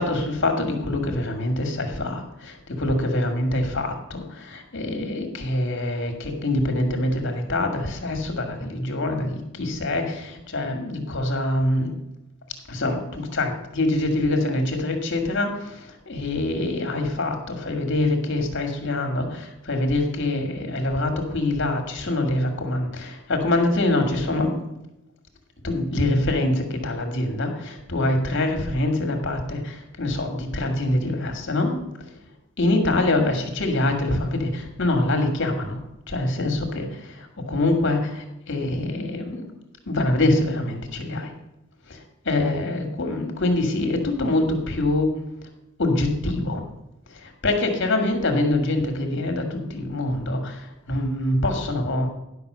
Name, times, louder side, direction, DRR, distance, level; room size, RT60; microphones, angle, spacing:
voice 1, 0.0-11.9 12.7-24.5 25.6-31.8 32.6-35.8 36.1-39.5 39.9-41.3 41.9-42.0 42.3-45.1 45.8-46.6 47.1-52.1, left 2 dB, 60° left, 5 dB, 2.0 m, -25 dB
11.0 x 5.8 x 6.7 m, 0.91 s
head